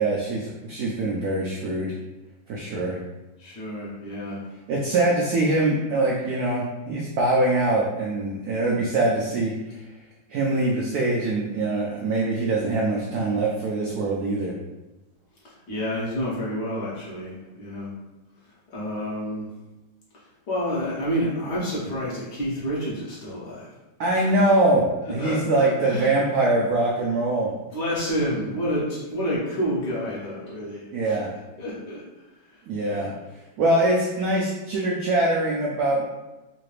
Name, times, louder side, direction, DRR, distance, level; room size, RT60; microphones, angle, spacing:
voice 1, 0.0-1.9 2.5-3.0 4.7-9.8 10.3-14.5 24.0-27.5 30.9-31.3 32.7-33.1 33.6-36.1, right 2 dB, 90° right, -3 dB, 0.8 m, -23 dB
voice 2, 3.4-4.4 15.4-17.9 18.7-19.5 20.5-23.7 24.1-24.2 25.1-26.1 27.7-31.2 31.6-32.0 32.5-33.1, equal, 60° left, -7 dB, 1.5 m, -29 dB
3.8 x 2.5 x 3.1 m, 1.1 s
omnidirectional pair, 2.2 m